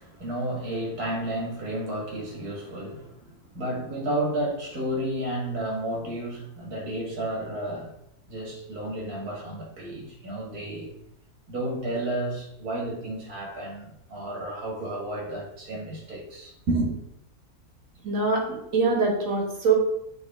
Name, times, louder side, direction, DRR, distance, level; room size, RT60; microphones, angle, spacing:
voice 1, 0.0-7.9 8.3-10.9 11.5-16.9, right 1 dB, 85° right, 2.4 m, -31 dB
voice 2, 18.0-19.7, right 4 dB, 65° right, 1.8 m, -24 dB
8.3 x 3.9 x 3.6 m
omnidirectional pair, 1.6 m